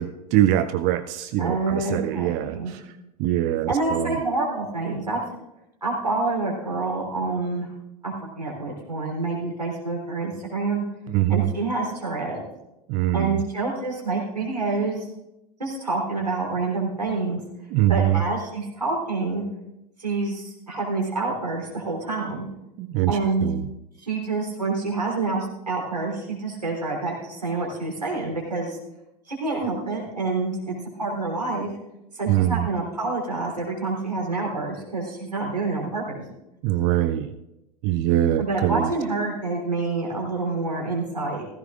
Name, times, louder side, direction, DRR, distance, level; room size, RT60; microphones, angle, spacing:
voice 1, 0.0-2.8 3.2-4.1 11.1-11.5 12.9-13.4 17.7-18.2 22.8-23.6 32.3-32.7 36.6-37.3 37.8-38.9, right 13 dB, 40° right, 11 dB, 0.5 m, -23 dB
voice 2, 1.4-2.7 3.7-5.2 5.8-7.7 8.0-10.8 11.3-12.4 13.1-15.1 15.6-17.4 17.9-19.4 20.0-22.5 23.1-23.5 24.0-28.8 29.3-31.7 32.1-36.2 38.4-41.5, right 3 dB, 85° right, -2 dB, 3.6 m, -27 dB
16.0 x 15.5 x 2.5 m, 0.91 s
figure-of-eight pair, 85°, 20 cm